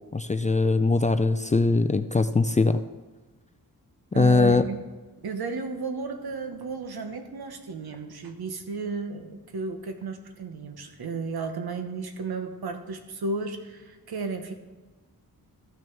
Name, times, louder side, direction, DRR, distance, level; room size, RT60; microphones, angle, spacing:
voice 1, 0.1-2.8 4.1-4.6, left 3 dB, 20° left, 9 dB, 0.3 m, -21 dB
voice 2, 4.1-4.8 5.2-14.5, right 4 dB, 75° right, 6 dB, 1.2 m, -33 dB
13.5 x 6.1 x 4.6 m, 1.3 s
wide cardioid pair, 100°, 38 cm